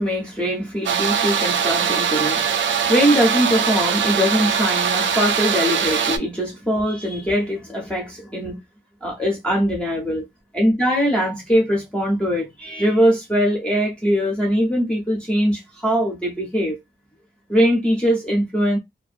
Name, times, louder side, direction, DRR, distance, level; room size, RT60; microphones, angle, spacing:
voice 1, 0.0-8.6 9.0-10.3 10.5-16.8 17.5-18.8, equal, 5° left, 0.5 m, -21 dB
sound 1, 0.8-6.2, right 7 dB, 75° right, 0.4 m, -21 dB
2.5 x 2.2 x 2.4 m
wide cardioid pair, 160°, 20 cm